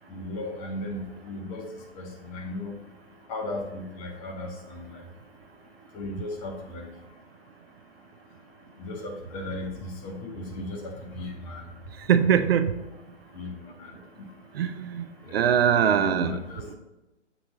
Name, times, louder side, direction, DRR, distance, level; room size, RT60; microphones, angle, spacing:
voice 1, 0.1-1.6 2.0-2.7 3.3-5.0 5.9-6.8 8.8-11.6 13.3-13.5 13.8-13.9 15.2-15.5 15.9-16.8, left 2 dB, 30° left, 2 dB, 1.4 m, -36 dB
voice 2, 12.0-12.8 14.5-15.0 15.3-16.4, right 8 dB, 55° right, 10 dB, 0.5 m, -22 dB
7.1 x 5.7 x 3.9 m, 1.0 s
hypercardioid pair, 135°, 36 cm